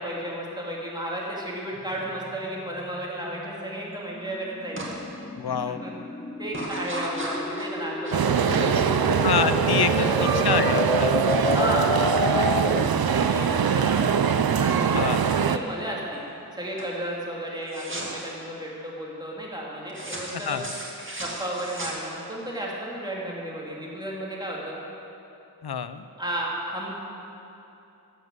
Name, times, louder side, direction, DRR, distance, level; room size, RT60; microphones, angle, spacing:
voice 1, 0.0-4.9 5.8-5.9 6.4-8.7 10.1-10.3 11.4-14.2 14.6-16.2 16.5-20.6 21.2-24.8 26.2-26.9, right 1 dB, 10° right, -4 dB, 3.0 m, -33 dB
sound 1, 1.8-13.1, left 2 dB, 15° left, 0.5 m, -30 dB
sound 2, 4.8-4.9 5.4-5.8 6.5-12.5 12.8-13.5 13.8-15.8 16.2-16.5 16.8-17.0 17.7-18.3 19.9-22.4, right 1 dB, 30° right, 2.2 m, -38 dB
voice 2, 5.4-5.8 9.2-11.1 14.9-15.2 20.3-20.7 25.6-26.1, left 7 dB, 85° left, 12 dB, 0.6 m, -27 dB
sound 3, 8.1-15.6, right 7 dB, 70° right, 0.5 m, -23 dB
12.5 x 7.8 x 7.9 m, 2.8 s
wide cardioid pair, 55°, 38 cm